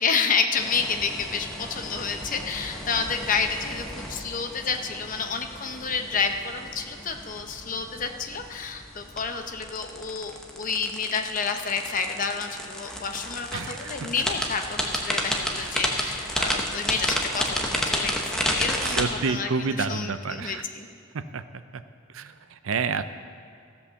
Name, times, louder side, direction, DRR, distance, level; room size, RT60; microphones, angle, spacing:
voice 1, 0.0-19.5 19.8-20.9, left 5 dB, 40° left, 6 dB, 0.8 m, -29 dB
sound 1, 0.6-19.0, equal, 5° left, 1.0 m, -32 dB
voice 2, 13.5-14.0 15.6-15.8 18.8-20.6 21.1-21.4 21.7-21.8 22.1-23.0, right 5 dB, 90° right, 11 dB, 0.6 m, -29 dB
15.0 x 5.5 x 6.9 m, 2.3 s
head